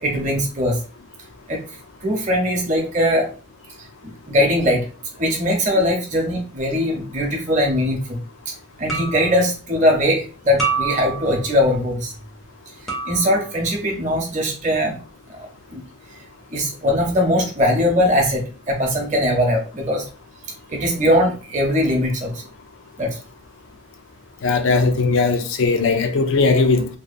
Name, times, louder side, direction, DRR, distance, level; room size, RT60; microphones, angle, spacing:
voice 1, 0.0-0.8 1.5-1.6 2.0-3.3 3.8-4.8 5.2-8.2 8.5-12.1 13.0-15.0 15.3-15.8 16.5-20.1 20.7-22.4 23.0-23.2, equal, 35° right, 0.7 m, -20 dB
sound 1, 7.5-7.7 8.9-9.4 10.6-11.5 12.9-13.5, right 5 dB, ahead, 0.5 m, -27 dB
voice 2, 24.4-26.9, left 4 dB, 65° left, 0.4 m, -18 dB
2.7 x 2.0 x 2.4 m
head